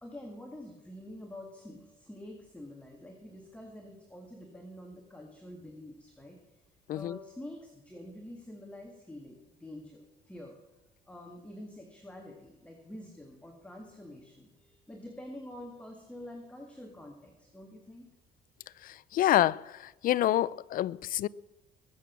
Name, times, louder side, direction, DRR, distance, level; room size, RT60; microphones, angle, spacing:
voice 1, 0.0-6.4 6.9-10.6 11.1-18.1, left 1 dB, 5° left, 1.8 m, -47 dB
voice 2, 18.8-19.6 20.0-21.3, left 13 dB, 55° left, 0.4 m, -27 dB
21.5 x 7.5 x 5.9 m
cardioid pair, 110°, 17 cm